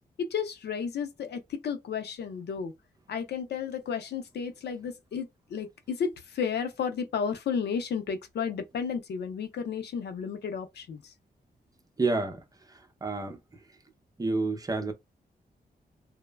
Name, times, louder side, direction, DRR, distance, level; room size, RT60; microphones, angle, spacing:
voice 1, 0.2-2.7 3.1-11.1, left 6 dB, 90° left, 0.5 m, -33 dB
voice 2, 12.0-12.4 13.0-13.4 14.2-14.9, right 3 dB, 20° right, 0.6 m, -28 dB
3.0 x 2.0 x 2.2 m
wide cardioid pair, 105°, 17 cm